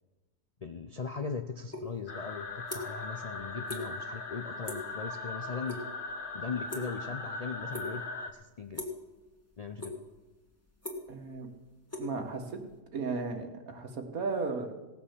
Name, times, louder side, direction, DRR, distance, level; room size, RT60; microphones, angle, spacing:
voice 1, 0.6-5.8 6.3-8.0 8.3-8.8 9.6-9.9, left 5 dB, 55° left, 5 dB, 0.4 m, -39 dB
sound 1, 1.7-1.9 2.2-3.1 3.4-3.8 4.1-4.4 4.6-5.0 5.3-5.8 6.1-7.2 7.7-8.1 8.7-9.1 9.5-10.2 10.5-12.7, left 2 dB, 10° left, 1.9 m, -40 dB
sound 2, 2.1-8.3, left 3 dB, 40° left, 1.1 m, -39 dB
voice 2, 11.1-11.5 12.0-12.6 12.9-14.7, right 4 dB, 80° right, 4 dB, 1.9 m, -35 dB
17.0 x 7.0 x 7.2 m, 1.2 s
omnidirectional pair, 1.5 m